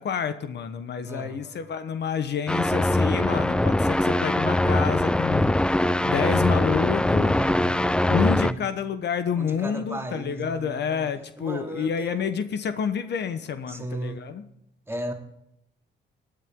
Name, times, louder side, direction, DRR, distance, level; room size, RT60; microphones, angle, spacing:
voice 1, 0.0-5.5 6.0-7.3 8.1-14.4, left 7 dB, 60° left, 10 dB, 1.1 m, -29 dB
voice 2, 1.1-1.6 7.3-8.0 8.4-8.7 9.3-11.1 11.4-12.3 13.7-14.3 14.9-15.1, right 1 dB, 10° right, 3 dB, 2.5 m, -35 dB
sound 1, 2.5-8.5, left 1 dB, 5° left, 0.4 m, -22 dB
18.0 x 10.0 x 3.7 m, 0.79 s
cardioid pair, 90°, 20 cm